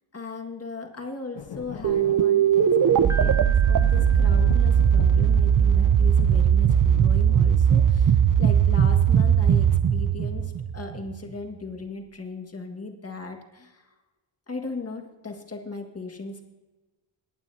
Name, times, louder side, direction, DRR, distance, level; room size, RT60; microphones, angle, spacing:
voice 1, 0.1-2.5 2.9-13.9 14.5-16.5, left 3 dB, 30° left, 3 dB, 1.8 m, -37 dB
sound 1, 1.3-5.9 6.2-7.4, left 8 dB, 55° left, 0.8 m, -37 dB
sound 2, 1.8-11.2, right 8 dB, 40° right, 0.6 m, -19 dB
Piano, 3.1-5.2, right 4 dB, 5° right, 0.9 m, -38 dB
19.5 x 8.9 x 2.7 m, 1.2 s
cardioid pair, 65°, 48 cm